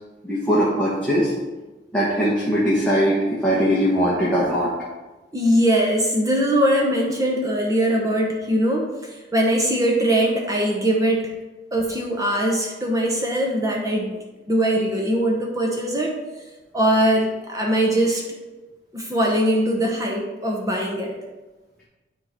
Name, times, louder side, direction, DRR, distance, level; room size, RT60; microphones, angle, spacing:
voice 1, 0.2-1.3 1.9-4.7, equal, 5° left, -8 dB, 1.3 m, -20 dB
voice 2, 5.3-8.9 9.3-11.3 11.7-14.2 14.5-16.1 16.7-18.2 18.9-21.1, right 1 dB, 20° right, 0 dB, 0.9 m, -21 dB
9.7 x 3.8 x 4.3 m, 1.2 s
head